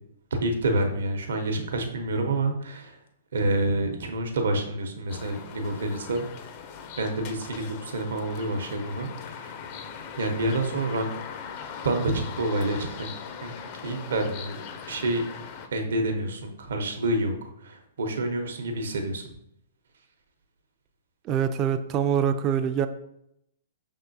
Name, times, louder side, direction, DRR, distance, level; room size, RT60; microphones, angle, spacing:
voice 1, 0.4-3.0 3.3-6.2 7.0-9.5 10.2-11.1 11.8-13.1 13.4-13.5 13.8-14.6 14.9-15.2 15.7-19.2, right 2 dB, 70° right, 5 dB, 0.8 m, -28 dB
sound 1, 5.1-15.7, left 7 dB, 40° left, 0.5 m, -40 dB
voice 2, 21.2-22.9, right 8 dB, 30° right, 9 dB, 0.4 m, -24 dB
5.5 x 3.5 x 2.6 m, 0.77 s
hypercardioid pair, 120°, 0 cm